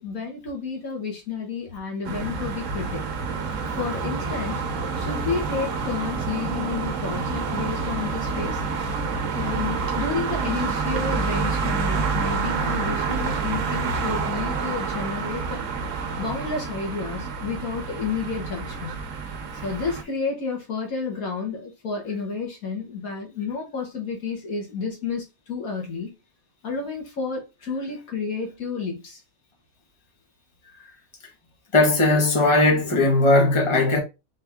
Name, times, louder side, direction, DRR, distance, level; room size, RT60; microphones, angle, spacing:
voice 1, 0.0-3.0 3.8-4.6 5.0-8.6 9.4-15.6 16.2-19.0 19.6-26.1 26.6-29.2 30.6-31.0, left 5 dB, 80° left, 2.0 m, -31 dB
sound 1, 2.1-20.0, right 4 dB, 65° right, 1.1 m, -28 dB
voice 2, 31.7-34.0, left 2 dB, 20° left, 1.5 m, -18 dB
4.3 x 3.4 x 3.6 m
omnidirectional pair, 1.5 m